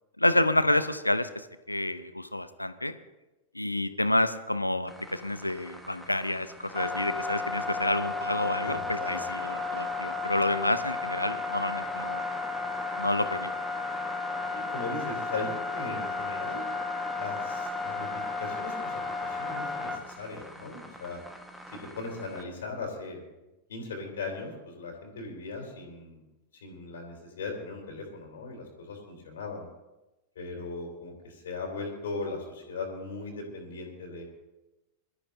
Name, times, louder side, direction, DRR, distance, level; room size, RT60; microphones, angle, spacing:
voice 1, 0.2-2.9 3.5-12.2 13.0-13.5, left 1 dB, 85° left, 12 dB, 0.7 m, -29 dB
sound 1, 4.9-22.4, left 3 dB, ahead, 1.4 m, -34 dB
voice 2, 8.6-9.2 14.5-16.6 17.2-21.2 21.7-23.3 23.7-26.2 26.6-29.7 30.4-34.2, left 3 dB, 60° left, 1 dB, 3.7 m, -38 dB
23.0 x 13.5 x 2.7 m, 1.0 s
figure-of-eight pair, 90°, 0 cm